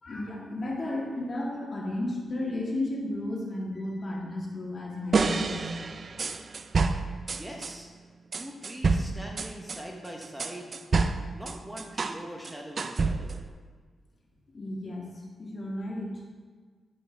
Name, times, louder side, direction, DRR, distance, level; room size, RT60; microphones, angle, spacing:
voice 1, 0.0-5.7 14.5-15.1 15.4-16.1, left 1 dB, 45° left, -3 dB, 2.1 m, -33 dB
sound 1, 5.1-7.7 8.3-12.2 12.4-13.5, right 4 dB, 50° right, 0.4 m, -28 dB
voice 2, 7.3-7.9 8.3-10.8 11.3-13.5, equal, 10° right, 0 dB, 1.0 m, -42 dB
10.5 x 5.6 x 3.5 m, 1.5 s
cardioid pair, 65°, 0 cm